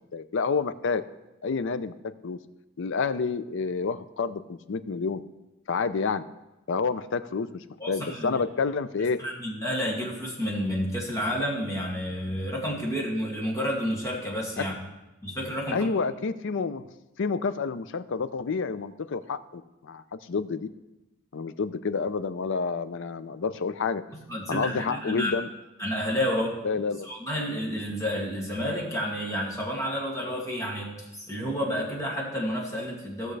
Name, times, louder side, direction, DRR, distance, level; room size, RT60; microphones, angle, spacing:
voice 1, 0.1-1.0 1.4-1.9 2.2-2.4 2.8-5.2 5.7-6.2 6.7-9.2 14.6-14.7 15.7-16.8 17.2-20.7 21.3-24.0 24.5-25.5 26.6-27.1, left 5 dB, 60° left, 13 dB, 0.5 m, -29 dB
voice 2, 7.8-8.4 9.2-14.7 15.2-15.9 24.1-25.3 25.8-26.6 27.0-33.3, equal, 15° left, -3 dB, 2.3 m, -30 dB
16.5 x 6.5 x 3.3 m, 1.0 s
head